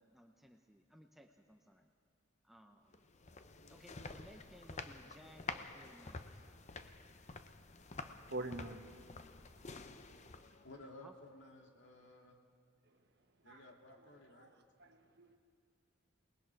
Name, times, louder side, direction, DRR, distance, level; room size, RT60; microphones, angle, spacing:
voice 1, 0.0-1.9 2.4-2.9 3.7-6.4 11.0-11.1, equal, ahead, 3 dB, 0.8 m, -60 dB
sound 1, 2.9-10.7, left 4 dB, 35° left, 0.7 m, -49 dB
voice 2, 8.3-8.9 13.4-13.6 14.4-14.5 14.8-15.4, right 2 dB, 55° right, 4 dB, 1.4 m, -44 dB
voice 3, 10.6-12.4 13.4-14.5, left 1 dB, 65° left, 1 dB, 2.4 m, -56 dB
28.0 x 19.5 x 4.7 m, 2.4 s
head